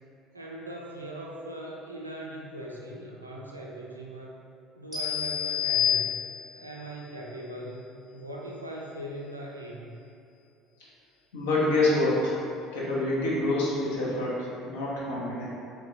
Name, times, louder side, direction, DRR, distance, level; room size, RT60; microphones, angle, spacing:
voice 1, 0.3-4.4 4.8-6.2 6.5-7.9 8.1-9.9, right 1 dB, 85° right, -3 dB, 0.3 m, -40 dB
sound 1, 4.9-6.7, left 9 dB, 5° right, 0.8 m, -28 dB
voice 2, 11.3-12.3 12.7-15.5, left 2 dB, 70° left, -7 dB, 0.7 m, -26 dB
3.4 x 3.0 x 2.6 m, 2.7 s
figure-of-eight pair, 60°, 0 cm